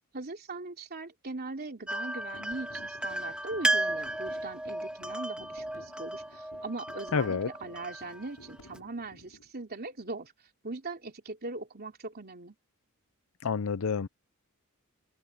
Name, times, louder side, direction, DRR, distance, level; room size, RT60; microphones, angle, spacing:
voice 1, 0.1-10.3 10.6-12.5, right 3 dB, 45° right, 3.3 m, -40 dB
sound 1, 1.9-8.8, right 1 dB, 5° right, 2.0 m, -34 dB
sound 2, 2.2-9.5, left 1 dB, 80° left, 6.6 m, -54 dB
voice 2, 7.1-7.5 13.4-14.1, left 5 dB, 65° left, 0.6 m, -28 dB
head